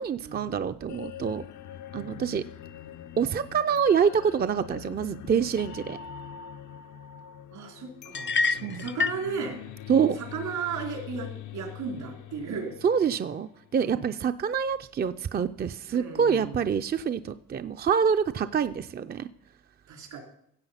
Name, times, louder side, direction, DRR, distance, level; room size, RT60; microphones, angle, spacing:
voice 1, 0.0-1.4 1.9-2.4 3.2-6.0 8.5-8.8 9.9-10.2 12.8-19.3, right 7 dB, 30° right, 10 dB, 0.5 m, -26 dB
sound 1, 0.9-13.9, left 10 dB, 75° left, 0.7 m, -43 dB
voice 2, 7.5-8.3 8.7-9.6 10.3-12.7 13.8-14.1 15.9-16.6 19.9-20.2, right 5 dB, 80° right, 2 dB, 3.7 m, -35 dB
sound 2, 8.1-9.3, left 4 dB, 40° left, 0.5 m, -27 dB
15.5 x 7.6 x 5.7 m, 0.70 s
cardioid pair, 90°, 30 cm